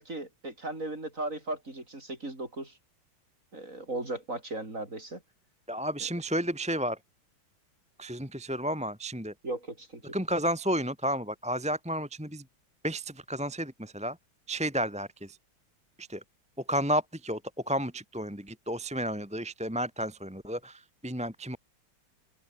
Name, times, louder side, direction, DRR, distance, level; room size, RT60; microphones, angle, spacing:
voice 1, 0.0-2.8 3.5-5.2 9.4-10.0, right 2 dB, 35° right, 6.2 m, -37 dB
voice 2, 5.7-7.0 8.0-9.3 10.1-12.4 12.8-14.2 14.5-15.4 16.0-16.2 16.6-21.6, equal, 5° right, 2.1 m, -32 dB
omnidirectional pair, 2.3 m